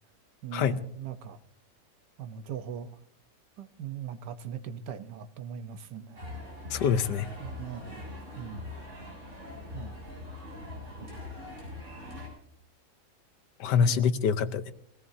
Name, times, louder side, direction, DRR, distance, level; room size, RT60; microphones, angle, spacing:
voice 1, 0.4-1.4 2.2-2.9 3.6-6.3 7.4-8.0 8.4-8.7 9.7-9.9 11.0-11.1 13.8-14.0, right 8 dB, 75° right, 1.4 m, -40 dB
sound 1, 6.2-12.3, left 2 dB, 40° right, 7.8 m, -42 dB
voice 2, 6.7-7.3 13.6-14.7, left 7 dB, 75° left, 1.4 m, -25 dB
23.0 x 17.0 x 2.7 m
omnidirectional pair, 1.9 m